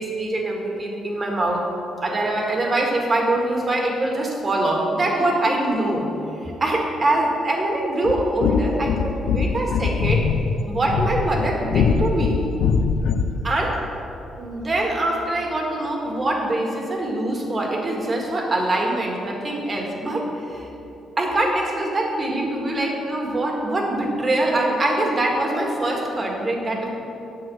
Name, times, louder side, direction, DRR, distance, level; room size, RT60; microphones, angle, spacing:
voice 1, 0.0-1.6 2.0-6.1 6.4-10.3 10.7-12.4 13.4-13.8 14.4-20.7 21.2-26.9, right 1 dB, 30° right, 0 dB, 1.9 m, -23 dB
sound 1, 8.0-13.4, left 5 dB, 80° left, 0.5 m, -22 dB
8.7 x 6.5 x 6.3 m, 2.9 s
cardioid pair, 105°, 0 cm